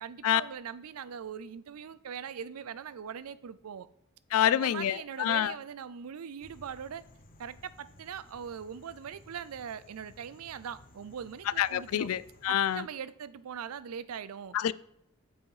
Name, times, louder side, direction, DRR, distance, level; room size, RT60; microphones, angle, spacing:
voice 1, 0.0-3.9 4.5-7.0 7.4-12.1 12.5-14.6, right 7 dB, 85° right, 0.4 m, -41 dB
voice 2, 4.3-5.6 11.6-12.9 14.5-14.7, left 10 dB, 70° left, 0.3 m, -27 dB
sound 1, 6.4-12.8, left 2 dB, 40° left, 0.9 m, -57 dB
7.7 x 4.8 x 4.9 m
head